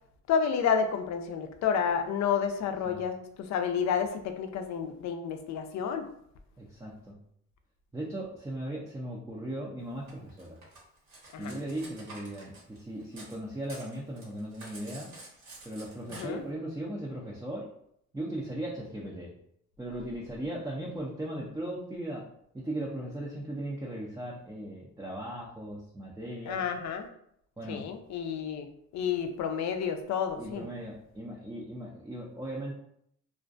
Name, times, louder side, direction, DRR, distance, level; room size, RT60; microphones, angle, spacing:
voice 1, 0.3-6.1 11.3-11.5 16.1-16.4 26.5-27.1 27.7-28.7 28.9-30.6, left 7 dB, 65° left, 7 dB, 0.4 m, -30 dB
voice 2, 6.6-7.2 7.9-10.6 11.4-15.1 15.6-17.7 18.1-19.3 19.8-22.2 22.5-26.6 27.6-27.9 30.4-32.7, right 1 dB, 10° right, -4 dB, 0.4 m, -38 dB
Cutlery silverware, 10.1-13.4 13.6-16.2, right 2 dB, 65° right, 1.1 m, -49 dB
2.4 x 2.2 x 2.5 m, 0.71 s
cardioid pair, 90°, 30 cm